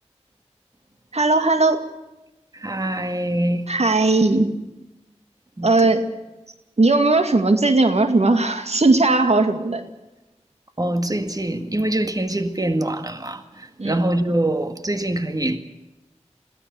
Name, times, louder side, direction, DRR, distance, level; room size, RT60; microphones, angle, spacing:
voice 1, 1.1-1.8 3.7-4.5 5.6-6.0 6.8-9.9 13.8-14.0, right 2 dB, 65° right, 8 dB, 2.1 m, -18 dB
voice 2, 2.5-3.7 5.6-5.7 10.8-15.6, right 1 dB, 30° right, 8 dB, 1.9 m, -24 dB
22.0 x 16.5 x 8.3 m, 1.0 s
wide cardioid pair, 45°, 12 cm